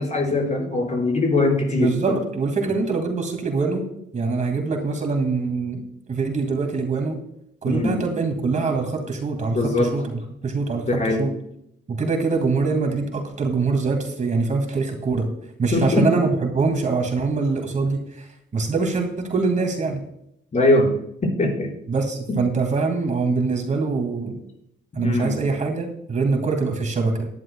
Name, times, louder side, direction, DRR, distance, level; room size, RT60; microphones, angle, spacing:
voice 1, 0.0-1.9 7.6-8.0 9.5-9.9 10.9-11.2 15.7-16.1 20.5-20.9 21.2-21.7 25.0-25.3, left 2 dB, 35° left, 0 dB, 5.2 m, -21 dB
voice 2, 1.8-3.9 4.1-5.8 6.1-7.2 7.6-11.3 11.9-15.3 15.6-20.0 21.9-24.4 25.0-27.3, right 4 dB, 40° right, 3 dB, 2.2 m, -24 dB
17.0 x 11.0 x 2.3 m, 0.76 s
cardioid pair, 90°, 20 cm